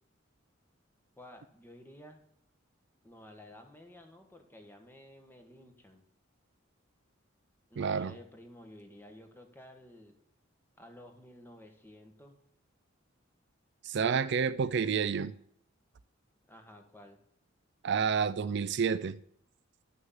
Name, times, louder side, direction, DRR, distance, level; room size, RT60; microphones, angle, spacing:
voice 1, 1.2-2.2 3.0-6.0 7.7-10.2 10.8-12.4 16.5-17.2, left 1 dB, 10° left, 1.4 m, -53 dB
voice 2, 7.8-8.1 13.8-15.3 17.8-19.2, right 6 dB, 55° right, 0.4 m, -29 dB
11.5 x 6.3 x 7.4 m
head